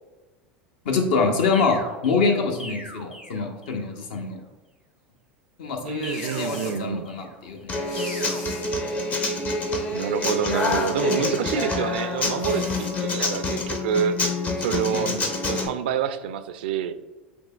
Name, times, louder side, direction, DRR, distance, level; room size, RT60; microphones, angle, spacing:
voice 1, 0.8-4.4 5.6-7.6 14.9-15.2, left 4 dB, 60° left, 4 dB, 0.8 m, -25 dB
sound 1, 1.5-3.9 6.0-7.4 8.0-8.4, equal, 90° left, 0.8 m, -41 dB
voice 2, 5.8-7.1 9.9-14.2 14.6-15.2 15.5-16.9, right 8 dB, 60° right, 11 dB, 0.3 m, -27 dB
sound 2, 6.0-6.8 7.8-8.7 10.4-11.0 12.4-12.9, left 2 dB, 45° left, 1.2 m, -39 dB
Human voice / Acoustic guitar, 7.7-15.7, left 2 dB, 25° left, 0.6 m, -27 dB
7.7 x 2.9 x 2.2 m, 1.1 s
figure-of-eight pair, 80°, 6 cm